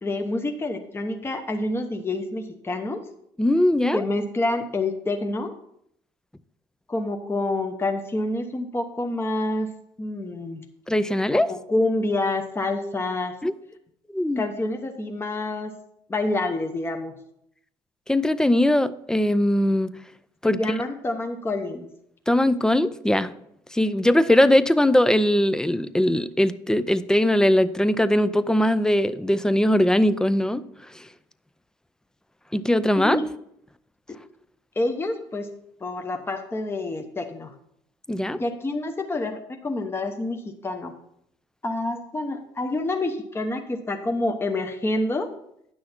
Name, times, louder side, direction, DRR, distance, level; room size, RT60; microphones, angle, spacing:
voice 1, 0.0-3.0 3.9-5.5 6.9-9.7 10.0-10.6 11.3-13.4 14.4-15.8 16.1-17.1 20.4-21.9 33.0-33.3 34.1-34.2 34.8-35.5 35.8-37.5 38.3-40.9 41.6-45.3, left 2 dB, 20° left, 1.0 m, -27 dB
voice 2, 3.4-4.0 10.9-11.5 13.4-13.5 14.1-14.4 18.1-19.9 20.4-20.6 22.3-23.3 23.7-30.6 32.5-33.2 38.1-38.4, left 1 dB, 5° left, 0.5 m, -20 dB
9.5 x 6.2 x 4.4 m
supercardioid pair, 80°, 11 cm